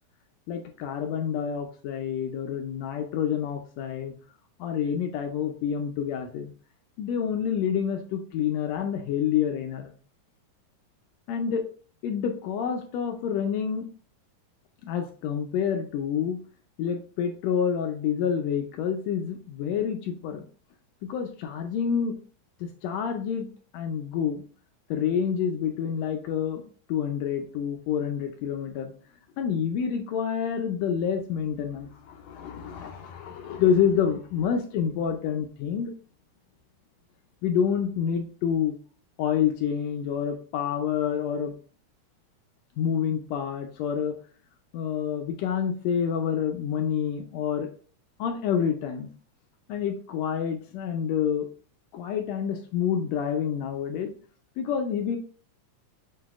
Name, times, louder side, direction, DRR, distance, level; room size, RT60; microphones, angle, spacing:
voice 1, 0.5-4.1 4.6-6.5 7.0-9.9 11.3-11.6 12.0-13.9 14.8-16.4 16.8-20.4 21.1-22.2 22.6-23.5 23.7-24.4 24.9-26.6 26.9-28.9 29.4-35.9 37.4-38.8 39.2-41.5 42.8-44.2 44.7-47.7 48.2-49.1 49.7-51.5 51.9-54.1 54.6-55.2, left 8 dB, 80° left, 5 dB, 1.6 m, -28 dB
7.6 x 2.7 x 2.4 m, 0.42 s
omnidirectional pair, 3.5 m